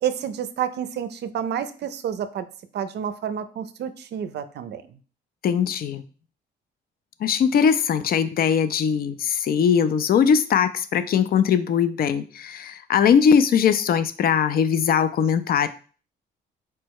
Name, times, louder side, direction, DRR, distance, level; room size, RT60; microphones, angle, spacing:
voice 1, 0.0-2.4 2.7-5.0, right 9 dB, 60° right, 12 dB, 0.5 m, -29 dB
voice 2, 5.4-6.0 7.2-15.7, left 7 dB, 50° left, 12 dB, 0.4 m, -20 dB
4.3 x 2.1 x 4.6 m, 0.40 s
cardioid pair, 90°, 20 cm